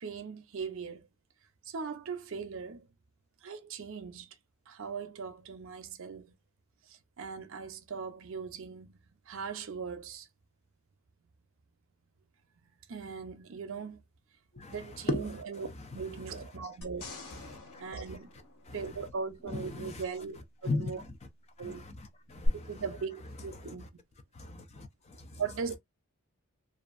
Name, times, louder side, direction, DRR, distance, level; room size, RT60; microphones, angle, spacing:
voice 1, 0.0-1.1 1.7-2.9 3.4-4.3 4.7-6.3 6.9-9.0 9.3-10.3 12.9-14.0 14.7-17.0 17.8-18.3 18.7-21.0 21.6-21.9 22.7-23.9 25.4-25.8, right 5 dB, 65° right, 0.5 m, -39 dB
sound 1, 16.8-19.3 22.4-22.5, left 2 dB, 85° left, 1.0 m, -46 dB
voice 2, 17.5-17.8 18.7-18.8 19.5-20.0 20.6-20.9 21.6-21.9 22.3-22.7 23.6-23.8 24.3-25.4, left 2 dB, 30° left, 0.4 m, -36 dB
2.6 x 2.5 x 2.4 m
head